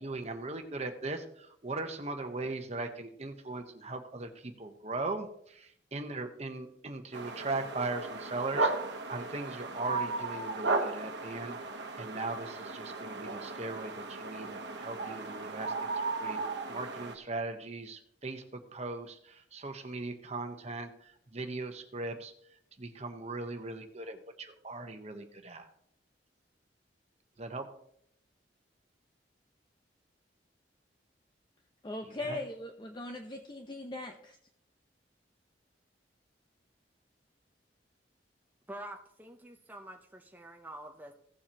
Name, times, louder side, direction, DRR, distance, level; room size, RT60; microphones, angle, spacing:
voice 1, 0.0-8.7 9.1-15.7 16.1-16.4 16.7-22.3 22.8-25.7 27.4-27.7 32.0-32.4, right 2 dB, 40° right, 1.0 m, -39 dB
sound 1, 7.1-17.1, right 3 dB, 80° right, 1.1 m, -35 dB
voice 2, 31.8-34.4, left 2 dB, 25° left, 0.7 m, -40 dB
voice 3, 38.7-41.1, right 1 dB, 10° right, 0.7 m, -47 dB
16.5 x 7.2 x 3.0 m
head